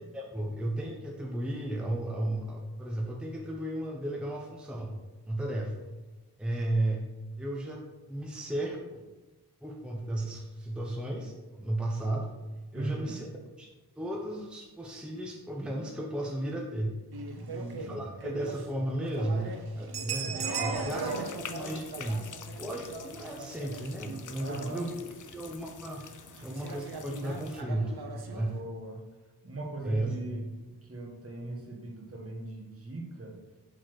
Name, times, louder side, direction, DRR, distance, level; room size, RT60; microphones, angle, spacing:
voice 1, 0.1-5.0 5.3-5.9 6.4-7.1 7.4-7.8 8.1-9.0 9.6-12.3 12.7-13.3 13.6-13.7 14.0-17.0 17.7-26.0 26.4-27.9 28.3-28.6 29.8-30.2, right 1 dB, ahead, 0 dB, 0.7 m, -34 dB
voice 2, 12.7-13.1 17.3-18.1 24.4-24.9 28.3-29.0 29.4-30.4 30.8-33.4, right 2 dB, 35° right, 0 dB, 1.3 m, -39 dB
sound 1, 17.1-28.6, right 4 dB, 70° right, 0.8 m, -39 dB
sound 2, 20.9-27.6, left 7 dB, 50° left, 0.5 m, -47 dB
6.2 x 4.1 x 4.8 m, 1.2 s
wide cardioid pair, 55°, 40 cm